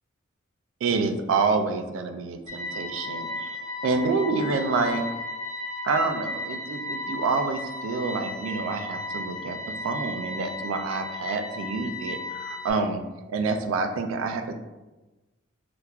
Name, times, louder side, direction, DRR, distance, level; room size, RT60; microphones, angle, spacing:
voice 1, 0.8-3.6 3.8-5.1 5.8-13.0 13.3-14.5, right 4 dB, 85° right, 6 dB, 0.3 m, -27 dB
sound 1, 2.5-12.7, left 2 dB, 20° left, 0.4 m, -35 dB
4.4 x 2.1 x 2.3 m, 1.1 s
head